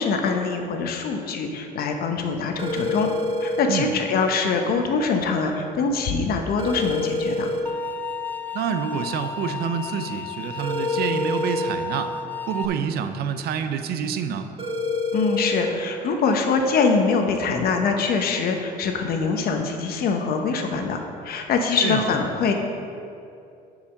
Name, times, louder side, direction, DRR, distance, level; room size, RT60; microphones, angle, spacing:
voice 1, 0.0-3.1 3.4-7.5 15.1-22.5, left 4 dB, 65° left, 4 dB, 0.9 m, -23 dB
sound 1, 2.6-3.6 6.6-7.6 10.6-11.6 14.6-15.6, left 2 dB, 35° right, 1.5 m, -26 dB
sound 2, 7.7-12.7, left 4 dB, 10° left, 0.4 m, -33 dB
voice 2, 8.5-12.1 12.5-14.5 21.8-22.1, right 7 dB, 70° right, 8 dB, 0.6 m, -27 dB
7.0 x 4.9 x 6.4 m, 2.6 s
cardioid pair, 110°, 17 cm